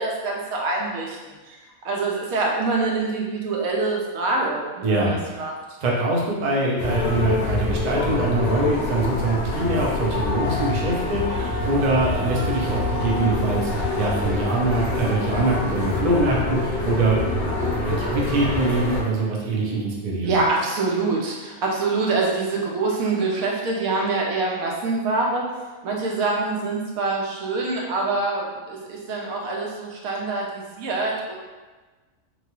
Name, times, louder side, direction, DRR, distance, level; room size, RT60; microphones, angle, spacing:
voice 1, 0.0-1.6 1.8-5.5 20.2-25.5 25.8-31.4, right 3 dB, 80° right, -1 dB, 1.0 m, -25 dB
voice 2, 4.8-5.4 5.8-17.2 17.6-20.4, right 2 dB, 60° right, -3 dB, 0.4 m, -23 dB
sound 1, 6.8-19.0, left 2 dB, 55° left, 0.7 m, -26 dB
Wind instrument woodwind instrument, 10.3-15.7, equal, 35° right, 1.0 m, -36 dB
2.8 x 2.2 x 2.9 m, 1.3 s
omnidirectional pair, 1.5 m